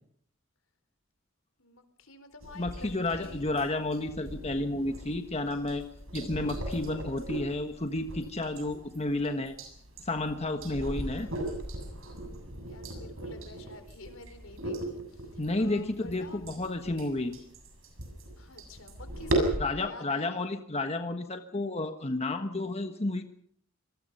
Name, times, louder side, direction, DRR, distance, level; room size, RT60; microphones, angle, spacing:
voice 1, 1.6-3.5 12.7-16.4 18.4-20.5, left 2 dB, 80° left, 9 dB, 4.4 m, -49 dB
sound 1, 2.4-19.6, right 1 dB, 80° right, 7.2 m, -38 dB
voice 2, 2.5-5.9 6.1-9.5 10.0-11.3 15.4-17.4 19.6-23.2, left 2 dB, 30° left, 6 dB, 1.4 m, -31 dB
26.5 x 20.5 x 5.7 m, 0.65 s
head